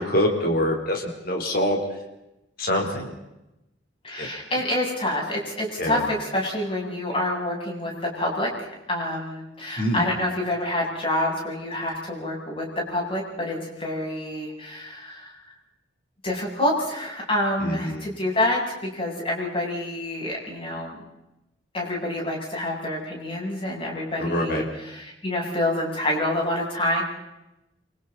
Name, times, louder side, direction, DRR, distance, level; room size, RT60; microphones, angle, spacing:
voice 1, 0.0-1.8 2.6-3.1 4.2-4.3 5.8-6.1 9.8-10.0 17.6-18.0 24.2-24.6, left 1 dB, 55° left, 2 dB, 3.8 m, -25 dB
voice 2, 4.0-8.5 8.9-15.3 16.2-21.0 21.7-27.0, left 1 dB, 30° left, -2 dB, 7.9 m, -27 dB
30.0 x 25.5 x 4.1 m, 0.92 s
head